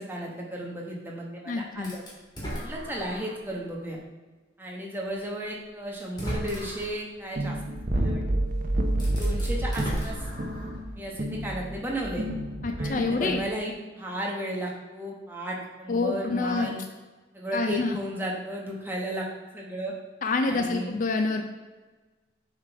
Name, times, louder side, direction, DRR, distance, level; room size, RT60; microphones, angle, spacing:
voice 1, 0.0-2.0 2.6-4.0 4.6-7.6 7.9-8.2 9.2-10.3 11.0-12.3 12.8-16.8 17.3-19.2 19.5-19.9 20.4-20.9, right 1 dB, 10° right, -2 dB, 1.1 m, -34 dB
voice 2, 1.5-1.9 12.6-13.4 15.9-16.7 17.5-18.0 20.2-21.4, left 3 dB, 40° left, 5 dB, 0.4 m, -27 dB
sound 1, 1.8-3.5 4.0-4.1 5.3-5.4 6.0-7.0 8.4-8.5 8.9-10.9, equal, 20° left, 2.1 m, -36 dB
sound 2, 7.4-13.5, right 1 dB, 45° right, 0.7 m, -29 dB
7.4 x 3.8 x 4.7 m, 1.3 s
head